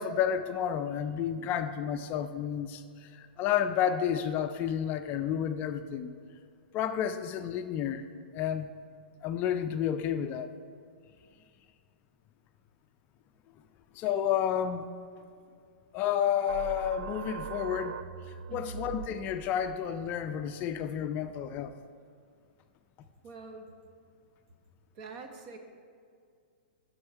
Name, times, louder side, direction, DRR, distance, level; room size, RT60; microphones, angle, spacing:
voice 1, 0.0-6.1 6.7-8.0 8.3-8.7 9.2-10.5 13.9-14.9 15.9-18.0 18.5-21.7, left 9 dB, 30° left, 9 dB, 0.4 m, -31 dB
sound 1, 16.5-21.8, right 8 dB, 65° right, 0.3 m, -43 dB
voice 2, 18.5-18.8 23.2-23.7 24.9-25.6, right 4 dB, 45° right, 5 dB, 1.0 m, -45 dB
7.7 x 6.4 x 4.5 m, 2.3 s
hypercardioid pair, 120°, 6 cm